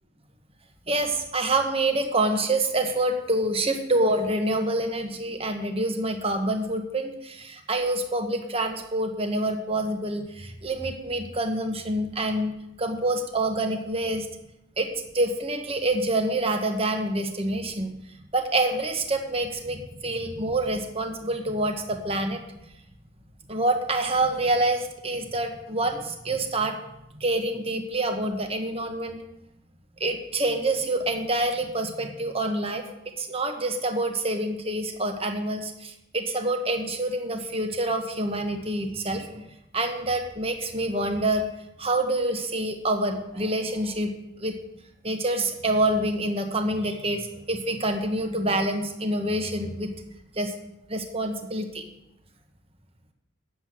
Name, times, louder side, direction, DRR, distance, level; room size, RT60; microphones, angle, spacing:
voice 1, 0.9-14.3 14.8-14.9 15.1-18.0 18.3-22.4 23.5-26.8 27.1-29.2 30.0-32.8 33.2-39.5 39.7-41.5 41.8-44.1 44.4-44.5 45.0-49.9 50.4-50.5 50.9-51.8, right 1 dB, 25° right, 5 dB, 1.3 m, -27 dB
10.0 x 7.8 x 7.6 m, 0.87 s
head